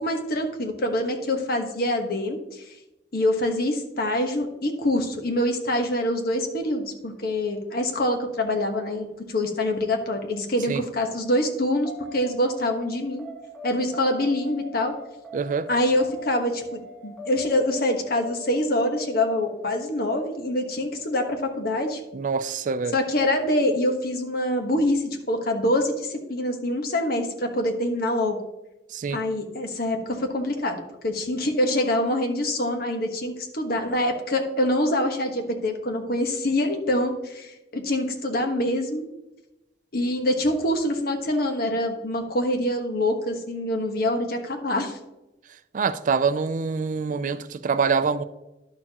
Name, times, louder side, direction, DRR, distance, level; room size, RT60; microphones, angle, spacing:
voice 1, 0.0-2.6 3.1-13.2 13.6-14.9 15.7-22.0 22.9-28.4 29.1-39.1 39.9-45.0, left 1 dB, 60° left, 1.2 m, -25 dB
sound 1, 11.9-22.0, left 1 dB, ahead, 1.7 m, -43 dB
voice 2, 15.3-15.7 22.1-22.9 28.9-29.2 45.7-48.2, right 5 dB, 45° right, 0.4 m, -25 dB
11.0 x 6.8 x 2.9 m
head